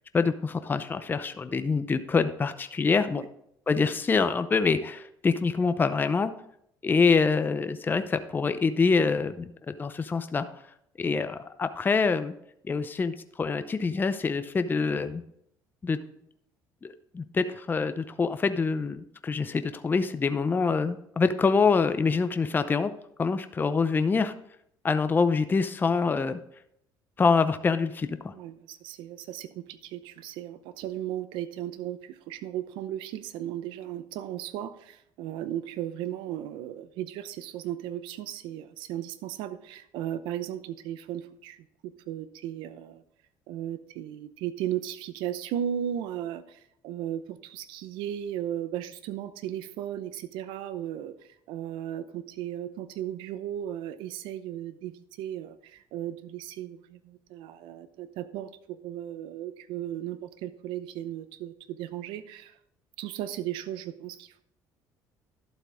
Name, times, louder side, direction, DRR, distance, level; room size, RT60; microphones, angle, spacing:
voice 1, 0.1-3.2 3.7-6.3 6.8-10.5 11.0-12.4 12.7-15.2 15.8-16.0 16.8-22.9 23.2-24.3 24.8-26.4 27.2-28.3, left 4 dB, 25° left, 10 dB, 0.6 m, -25 dB
voice 2, 28.3-43.0 43.5-62.6 63.0-64.4, right 11 dB, 80° right, 13 dB, 0.8 m, -36 dB
11.5 x 7.8 x 3.6 m, 0.73 s
supercardioid pair, 95°, 8 cm